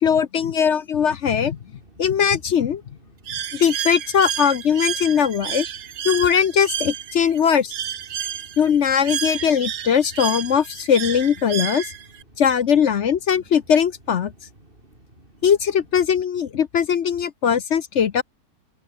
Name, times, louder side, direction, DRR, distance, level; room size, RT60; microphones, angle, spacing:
voice 1, 0.0-1.6 2.0-2.8 3.5-5.7 6.0-7.7 8.6-11.9 12.4-14.3 15.4-18.2, left 7 dB, 55° left, 1.0 m, -20 dB
sound 1, 1.3-16.2, right 1 dB, 35° right, 6.1 m, -53 dB
Bird, 3.3-12.2, right 9 dB, 70° right, 1.5 m, -30 dB
open air
omnidirectional pair, 1.7 m